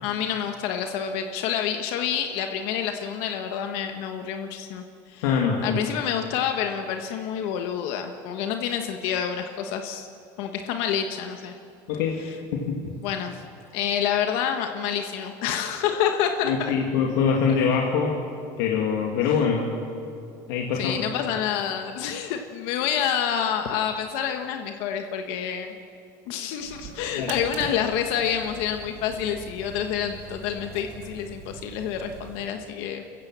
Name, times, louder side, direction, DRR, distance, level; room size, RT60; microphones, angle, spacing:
voice 1, 0.0-4.8 5.1-5.2 5.6-10.1 10.4-11.5 13.0-13.4 13.7-16.5 20.8-25.7 26.3-33.0, left 8 dB, 65° left, 5 dB, 1.3 m, -28 dB
voice 2, 5.2-5.8 11.9-12.2 12.5-12.9 16.4-18.2 18.6-19.7 20.5-21.0 27.2-27.4, left 6 dB, 90° left, -1 dB, 2.4 m, -24 dB
sound 1, 26.6-32.5, right 4 dB, 60° right, 2.9 m, -42 dB
29.0 x 15.0 x 7.5 m, 2.6 s
cardioid pair, 160°, 10 cm